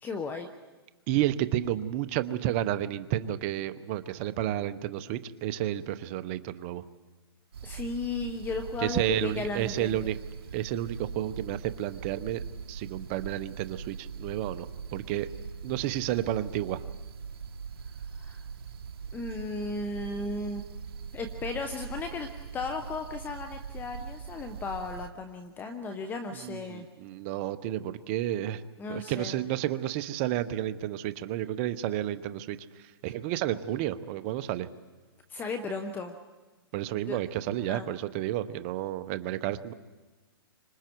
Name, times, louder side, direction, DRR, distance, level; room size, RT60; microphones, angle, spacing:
voice 1, 0.0-0.5 7.6-10.0 18.1-18.4 19.1-20.6 21.1-26.9 28.8-29.3 35.3-36.2 37.1-37.2 37.7-37.9, left 3 dB, 15° left, 7 dB, 0.9 m, -35 dB
voice 2, 1.1-6.8 8.8-10.2 10.5-12.4 12.7-15.3 15.6-16.8 26.4-28.6 28.9-34.7 36.7-39.7, right 12 dB, 35° right, 12 dB, 0.9 m, -31 dB
sound 1, 7.5-25.1, right 6 dB, 70° right, 1.1 m, -41 dB
29.0 x 25.5 x 4.6 m, 1.2 s
hypercardioid pair, 145°, 13 cm